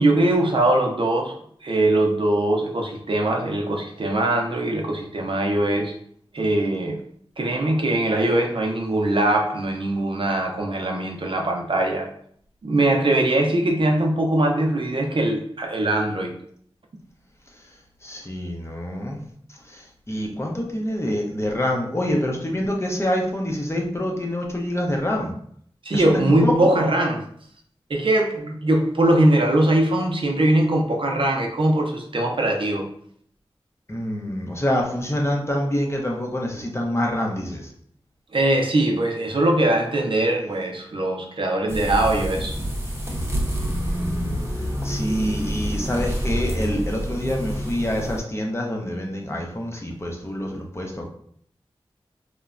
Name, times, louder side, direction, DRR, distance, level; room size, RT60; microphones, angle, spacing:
voice 1, 0.0-1.4 1.6-5.9 6.3-7.0 7.4-12.1 12.6-16.3 25.8-27.2 27.9-32.9 38.3-42.6, right 1 dB, 60° right, 1 dB, 0.5 m, -21 dB
voice 2, 18.0-19.2 19.7-25.3 25.9-26.7 33.9-37.7 43.5-44.4 44.8-51.1, left 1 dB, 25° left, 0 dB, 0.6 m, -26 dB
sound 1, 41.7-48.2, equal, 25° right, 0.7 m, -27 dB
3.0 x 2.1 x 2.4 m, 0.62 s
wide cardioid pair, 55°, 10 cm